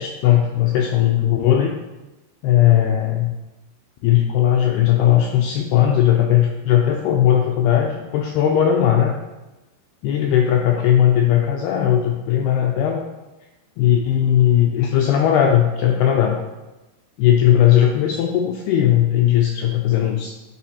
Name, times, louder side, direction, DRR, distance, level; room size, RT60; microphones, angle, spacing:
voice 1, 0.0-1.7 2.4-3.3 4.0-9.2 10.0-13.0 13.8-16.4 17.2-20.3, left 10 dB, 85° left, 2 dB, 2.3 m, -17 dB
9.9 x 5.0 x 4.3 m, 1.1 s
omnidirectional pair, 5.1 m